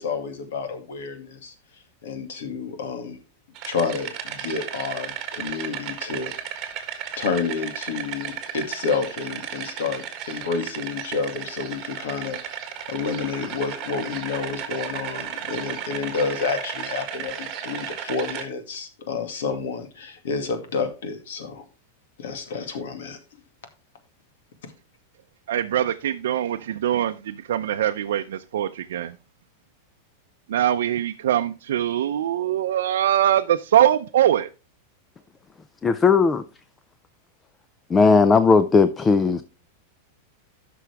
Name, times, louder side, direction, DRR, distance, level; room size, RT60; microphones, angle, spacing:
voice 1, 0.0-1.5 2.0-3.2 3.6-6.3 7.2-12.4 12.9-21.6 22.2-23.2, left 5 dB, 75° left, 2.2 m, -29 dB
sound 1, 3.6-18.5, right 9 dB, 25° right, 1.5 m, -34 dB
voice 2, 25.5-29.2 30.5-34.5, right 11 dB, 85° right, 0.5 m, -22 dB
voice 3, 35.8-36.4 37.9-39.4, left 4 dB, 10° left, 0.4 m, -17 dB
13.0 x 6.1 x 3.5 m
supercardioid pair, 170°, 0 cm